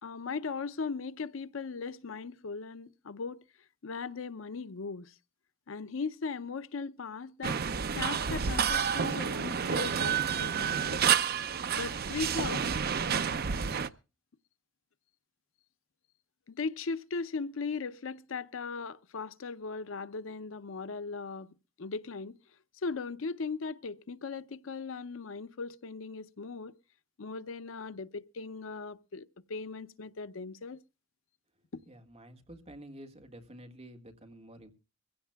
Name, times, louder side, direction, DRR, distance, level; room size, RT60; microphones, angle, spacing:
voice 1, 0.0-3.4 3.8-5.1 5.7-7.6 7.9-11.0 11.7-12.7 16.5-22.4 22.8-26.7 27.2-30.8, left 4 dB, 85° left, 0.6 m, -38 dB
sound 1, 7.4-13.9, right 7 dB, 50° right, 0.6 m, -29 dB
voice 2, 31.9-34.7, right 1 dB, 30° right, 1.7 m, -50 dB
22.5 x 16.0 x 2.3 m
head